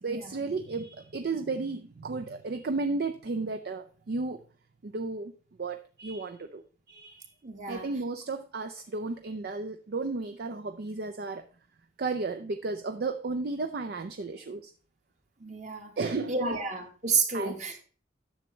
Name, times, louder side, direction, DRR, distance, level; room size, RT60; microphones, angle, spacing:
voice 1, 0.0-4.4 4.8-5.3 5.6-7.3 7.6-11.4 12.0-14.7 16.0-16.6 17.3-17.6, right 3 dB, 60° right, 7 dB, 0.5 m, -33 dB
voice 2, 7.4-7.8 15.4-15.9 16.3-17.8, right 4 dB, 40° right, 3 dB, 1.5 m, -30 dB
10.0 x 6.9 x 3.1 m, 0.40 s
head